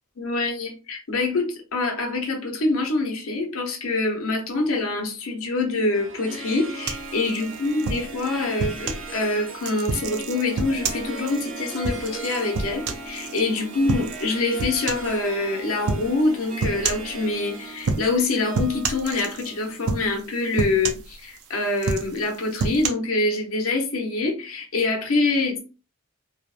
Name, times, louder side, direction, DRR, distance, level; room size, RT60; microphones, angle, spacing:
voice 1, 0.2-25.6, left 3 dB, 70° left, 0.8 m, -25 dB
Harp, 5.9-20.4, right 3 dB, 60° right, 0.8 m, -38 dB
sound 1, 6.9-9.1 9.6-13.4 13.9-14.3 14.6-15.2 15.9-16.1 16.6-17.1 17.8-18.3 18.5-19.5 19.9-20.3 20.6-21.4 21.8-22.9, right 4 dB, 90° right, 0.5 m, -28 dB
2.9 x 2.1 x 2.4 m
head